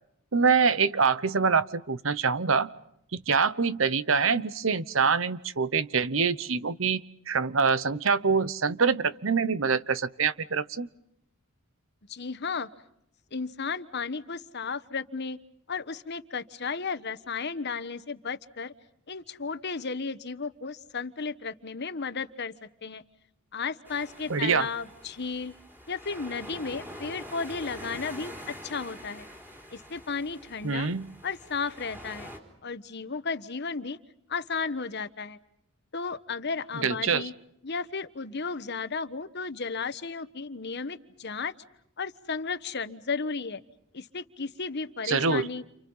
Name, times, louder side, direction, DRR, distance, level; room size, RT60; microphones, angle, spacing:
voice 1, 0.3-2.7 3.1-10.9 24.3-24.7 30.6-31.1 36.8-37.2 45.1-45.5, right 5 dB, 65° right, 16 dB, 1.0 m, -25 dB
voice 2, 12.1-12.7 13.3-15.4 15.7-18.7 19.1-22.5 22.8-23.0 23.5-25.5 25.9-29.3 29.7-30.9 31.2-32.3 32.6-34.0 34.3-35.4 35.9-37.3 37.6-41.5 42.0-43.6 43.9-45.6, left 5 dB, 50° left, 12 dB, 1.2 m, -34 dB
sound 1, 23.8-32.4, equal, 10° right, 4.3 m, -45 dB
30.0 x 28.5 x 5.6 m, 0.78 s
head